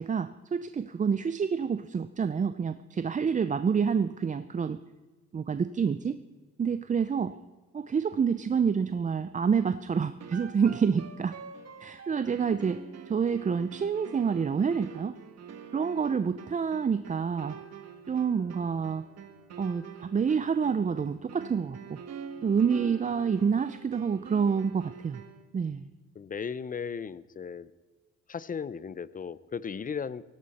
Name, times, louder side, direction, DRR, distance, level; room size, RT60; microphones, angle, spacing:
voice 1, 0.0-4.8 5.3-6.2 6.6-7.3 7.7-11.4 11.8-15.2 15.7-17.6 18.1-19.0 19.6-21.8 22.4-25.2 25.5-25.9, right 6 dB, 25° right, 12 dB, 0.5 m, -28 dB
sound 1, 10.2-25.5, right 7 dB, 60° right, 1.4 m, -46 dB
voice 2, 26.1-27.7 28.3-30.2, left 6 dB, 30° left, 18 dB, 0.5 m, -36 dB
17.0 x 17.0 x 4.2 m, 1.2 s
cardioid pair, 90°, 30 cm